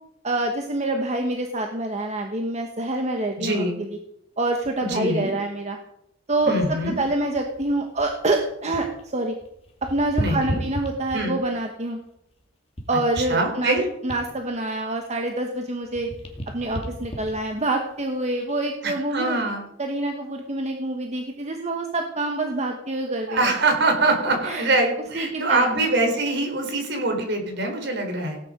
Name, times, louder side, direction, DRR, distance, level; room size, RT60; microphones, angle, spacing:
voice 1, 0.2-3.9 4.4-5.8 6.3-8.9 9.1-9.3 9.9-12.0 12.9-13.8 14.0-16.1 16.5-19.4 19.8-23.5 24.4-24.6 25.1-25.7, right 2 dB, 35° right, 3 dB, 1.4 m, -26 dB
voice 2, 3.4-3.8 4.8-5.3 6.5-7.0 10.2-10.6 11.1-11.3 13.2-13.9 18.8-19.7 23.3-28.4, right 2 dB, 60° right, 3 dB, 4.2 m, -23 dB
sound 1, 6.3-9.0 9.3-11.5 12.0-15.6 15.8-18.6 19.2-19.4, equal, 30° left, 2.5 m, -35 dB
17.5 x 9.8 x 5.2 m, 0.80 s
head